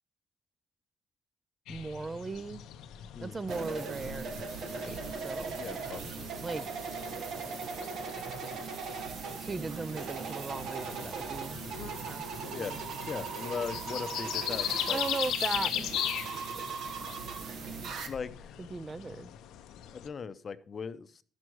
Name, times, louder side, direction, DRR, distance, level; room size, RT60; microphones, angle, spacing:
sound 1, 1.7-20.1, left 11 dB, 90° left, 0.7 m, -40 dB
voice 1, 1.7-2.6 3.2-5.0 5.2-5.6 6.4-6.6 9.4-11.6 12.0-12.2 12.6-12.8 14.9-15.9 18.6-19.3, right 3 dB, 30° right, 0.4 m, -37 dB
sound 2, 3.5-18.1, right 5 dB, 75° right, 1.4 m, -39 dB
voice 2, 5.6-6.3 12.5-12.8 13.1-15.0 18.1-18.6 19.9-21.2, left 6 dB, 45° left, 0.6 m, -39 dB
12.0 x 6.3 x 4.6 m
cardioid pair, 90°, 0 cm